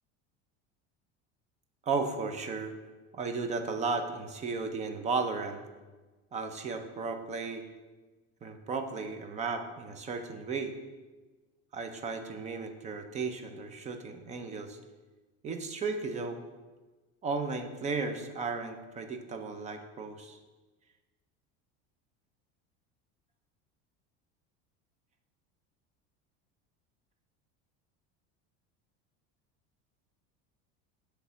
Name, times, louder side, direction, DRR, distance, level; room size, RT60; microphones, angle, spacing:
voice 1, 1.9-2.7 3.1-5.6 6.3-7.7 8.4-10.7 11.7-14.8 15.4-16.4 17.2-20.4, right 4 dB, 20° right, 6 dB, 0.6 m, -34 dB
8.2 x 3.3 x 6.2 m, 1.3 s
cardioid pair, 150°, 32 cm